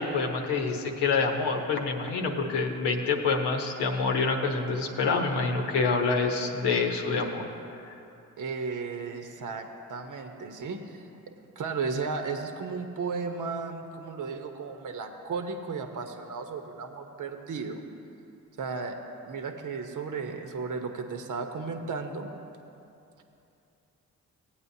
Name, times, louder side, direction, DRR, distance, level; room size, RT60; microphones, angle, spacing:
voice 1, 0.0-7.5, left 4 dB, 75° left, 2 dB, 1.1 m, -27 dB
voice 2, 8.4-11.1 11.6-17.8 18.6-19.0 19.3-22.3, right 4 dB, 50° right, 5 dB, 0.9 m, -34 dB
16.5 x 8.5 x 2.8 m, 2.8 s
hypercardioid pair, 45°, 41 cm